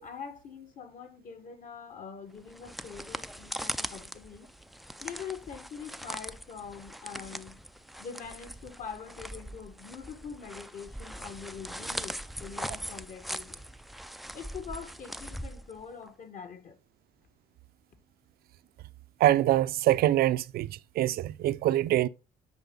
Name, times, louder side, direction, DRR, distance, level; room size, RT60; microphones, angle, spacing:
voice 1, 0.0-4.5 5.0-7.6 8.0-13.6 14.3-16.8, left 6 dB, 50° left, 1.6 m, -44 dB
sound 1, 2.4-16.1, equal, ahead, 0.3 m, -41 dB
voice 2, 19.2-22.1, right 14 dB, 65° right, 0.5 m, -24 dB
9.6 x 4.7 x 3.9 m
cardioid pair, 110°, 17 cm